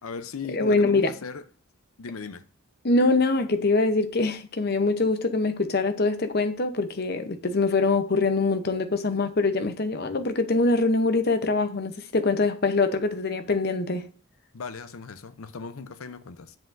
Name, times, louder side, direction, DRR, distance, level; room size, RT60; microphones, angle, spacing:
voice 1, 0.0-1.4 2.0-2.4 14.5-16.6, left 5 dB, 85° left, 0.6 m, -38 dB
voice 2, 0.5-1.1 2.8-14.1, left 3 dB, 50° left, 0.8 m, -24 dB
7.6 x 7.4 x 2.6 m
head